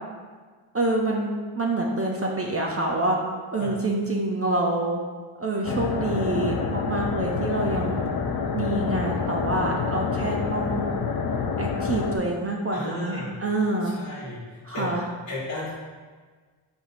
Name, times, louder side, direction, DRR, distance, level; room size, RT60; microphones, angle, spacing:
voice 1, 0.7-3.2 3.5-5.0 5.4-8.0 8.5-10.9 11.6-13.9 14.7-15.0, right 2 dB, 30° right, 0 dB, 0.5 m, -26 dB
sound 1, 5.6-12.2, left 5 dB, 50° left, 0.5 m, -27 dB
voice 2, 12.7-13.3 13.8-14.9 15.3-15.8, left 2 dB, 80° left, -10 dB, 1.3 m, -34 dB
4.4 x 4.1 x 2.6 m, 1.5 s
cardioid pair, 65°, 49 cm